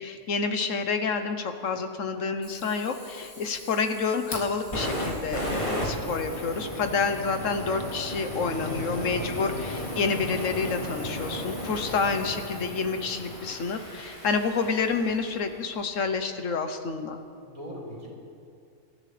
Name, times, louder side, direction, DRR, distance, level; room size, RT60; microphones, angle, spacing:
voice 1, 0.0-17.2, left 4 dB, 70° left, 7 dB, 1.3 m, -29 dB
Fire, 2.4-15.5, equal, 40° left, 2.7 m, -35 dB
voice 2, 8.6-9.4 17.4-18.1, equal, 90° right, -3 dB, 4.3 m, -41 dB
25.5 x 13.0 x 3.3 m, 2.4 s
omnidirectional pair, 1.4 m